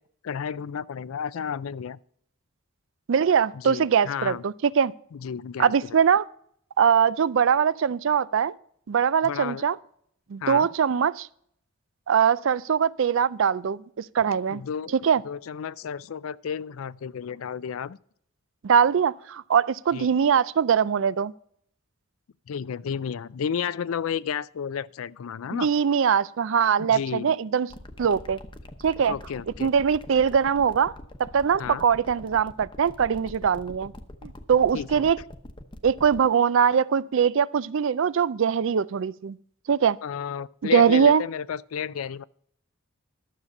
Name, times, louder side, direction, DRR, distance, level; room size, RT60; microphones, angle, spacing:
voice 1, 0.2-2.0 3.5-4.4 5.1-5.7 9.2-9.6 10.4-10.7 14.5-14.9 15.2-18.0 19.9-20.1 22.5-25.7 26.8-27.4 29.1-29.7 31.6-31.8 34.7-35.1 40.0-42.2, left 7 dB, 80° left, 0.4 m, -32 dB
voice 2, 3.1-4.9 5.6-6.2 6.8-8.5 8.9-9.8 10.3-11.3 12.1-14.6 15.0-15.2 18.6-21.3 25.5-27.7 28.0-28.4 28.8-29.1 29.6-30.9 31.2-33.9 34.2-35.2 35.8-39.4 39.7-40.0 40.7-41.2, right 7 dB, 65° right, 0.4 m, -22 dB
sound 1, 27.7-36.3, left 1 dB, 25° left, 0.9 m, -43 dB
12.5 x 7.3 x 5.4 m
head